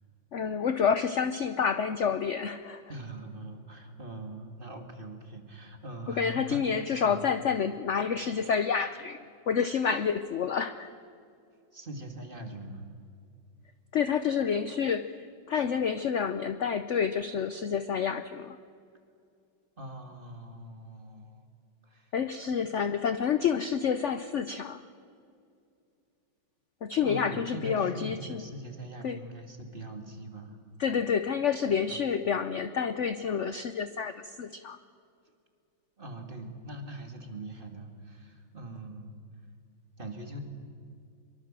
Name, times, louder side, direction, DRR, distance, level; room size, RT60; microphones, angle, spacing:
voice 1, 0.3-2.8 6.2-9.2 9.5-10.9 13.9-15.2 15.5-18.6 22.1-24.8 26.8-28.4 29.0-29.2 30.8-34.8, left 7 dB, 60° left, 11 dB, 0.7 m, -28 dB
voice 2, 2.9-7.3 11.7-12.9 19.8-21.4 21.8-22.1 27.0-30.6 31.9-32.0 36.0-39.2 40.0-40.4, right 1 dB, 25° right, 4 dB, 2.5 m, -42 dB
25.0 x 23.0 x 7.5 m, 2.4 s
omnidirectional pair, 2.1 m